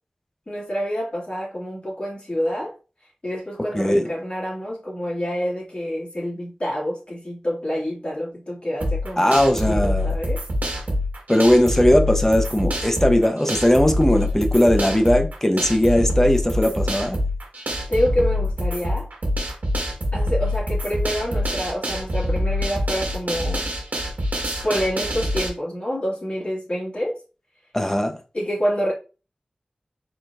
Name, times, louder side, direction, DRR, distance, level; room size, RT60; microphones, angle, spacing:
voice 1, 0.5-2.7 3.2-9.3 9.7-10.4 17.9-19.1 20.1-23.7 24.6-27.2 28.3-28.9, equal, 45° left, 2.1 m, -27 dB
voice 2, 3.7-4.1 9.2-10.1 11.3-17.2 27.7-28.2, left 1 dB, 15° left, 0.7 m, -18 dB
sound 1, 8.8-25.5, left 1 dB, 80° right, 1.4 m, -25 dB
4.5 x 4.0 x 2.4 m
wide cardioid pair, 55°, 3 cm